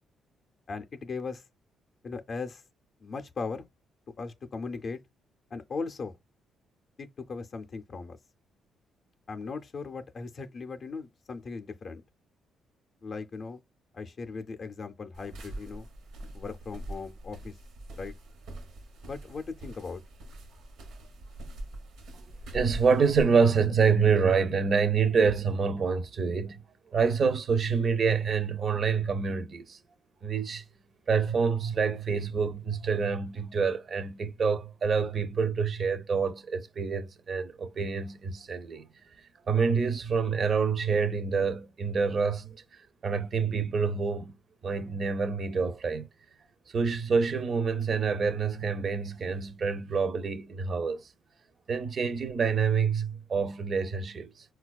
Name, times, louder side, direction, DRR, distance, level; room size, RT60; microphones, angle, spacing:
voice 1, 0.7-1.4 2.0-2.6 3.0-3.7 4.2-5.0 5.5-6.2 7.0-8.2 9.3-12.0 13.0-13.6 13.9-15.9 16.3-17.6 18.0-18.1 19.0-20.0, left 4 dB, 50° left, 0.4 m, -38 dB
sound 1, 15.1-23.2, right 1 dB, 80° right, 0.8 m, -43 dB
voice 2, 22.5-29.8 30.2-30.6 31.1-38.9 39.5-42.6 43.0-44.4 44.6-46.1 46.7-51.1 51.7-54.4, right 5 dB, 45° right, 0.5 m, -27 dB
4.1 x 2.2 x 2.3 m
cardioid pair, 90°, 0 cm